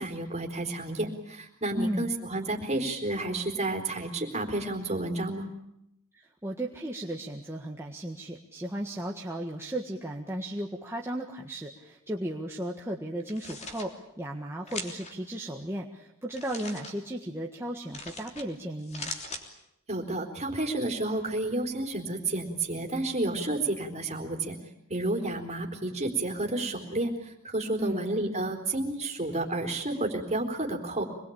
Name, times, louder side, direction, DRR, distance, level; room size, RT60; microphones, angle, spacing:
voice 1, 0.0-5.5 19.9-24.6 24.9-31.0, right 2 dB, 30° right, 1 dB, 4.0 m, -31 dB
voice 2, 1.8-2.1 6.1-19.1 27.8-28.1, right 1 dB, 10° right, -1 dB, 1.7 m, -35 dB
sound 1, 13.2-13.9 14.7-15.1 16.3-16.9 17.9-18.5 18.8-19.4, left 2 dB, 30° left, 3.3 m, -39 dB
26.0 x 21.5 x 8.7 m, 0.81 s
head